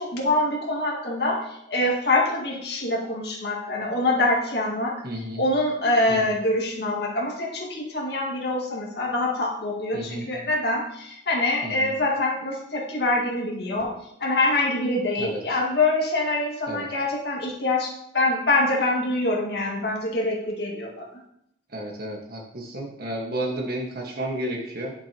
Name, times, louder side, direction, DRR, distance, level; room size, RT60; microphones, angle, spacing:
voice 1, 0.0-5.0 5.4-13.9 14.2-21.2, left 2 dB, 70° left, -2 dB, 2.1 m, -25 dB
voice 2, 5.0-5.4 6.1-6.4 9.9-10.3 11.6-11.9 15.2-15.6 16.7-16.9 21.7-24.9, right 1 dB, 60° right, 0 dB, 1.7 m, -32 dB
9.4 x 7.0 x 3.0 m, 0.75 s
head